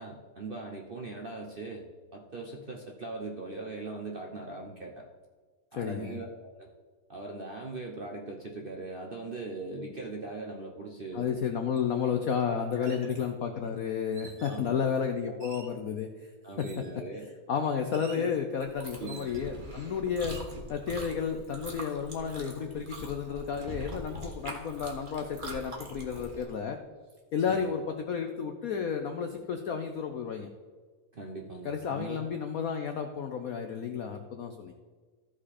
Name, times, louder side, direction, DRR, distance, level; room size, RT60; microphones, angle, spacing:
voice 1, 0.0-1.8 2.1-5.1 5.7-6.7 7.1-11.4 12.8-13.1 14.4-14.9 15.2-15.5 16.4-17.3 18.1-18.4 19.0-19.3 27.5-27.6 31.1-32.3, right 3 dB, 75° right, 1 dB, 0.5 m, -40 dB
voice 2, 5.8-6.2 11.1-16.3 16.6-16.7 17.5-26.8 27.3-30.5 31.6-34.7, left 7 dB, 75° left, 5 dB, 0.8 m, -32 dB
sound 1, 11.8-11.9 12.7-13.1 14.1-14.7 15.4-15.8 16.6-17.0 17.9-18.3 19.1-19.6 20.2-20.5, right 6 dB, 55° right, 1.0 m, -50 dB
Chewing mastication, 18.6-26.4, right 1 dB, 25° right, 1.4 m, -43 dB
14.5 x 5.1 x 4.2 m, 1.4 s
omnidirectional pair, 2.3 m